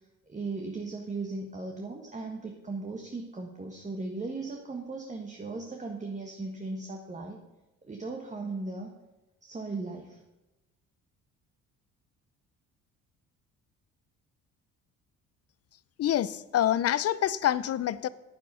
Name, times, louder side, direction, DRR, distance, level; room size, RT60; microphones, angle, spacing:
voice 1, 0.3-7.4 7.8-8.9 9.4-10.2, right 3 dB, 20° right, 2 dB, 1.5 m, -37 dB
voice 2, 16.0-18.1, left 11 dB, 50° left, 18 dB, 0.6 m, -26 dB
9.5 x 8.3 x 5.5 m, 1.0 s
supercardioid pair, 75°, 32 cm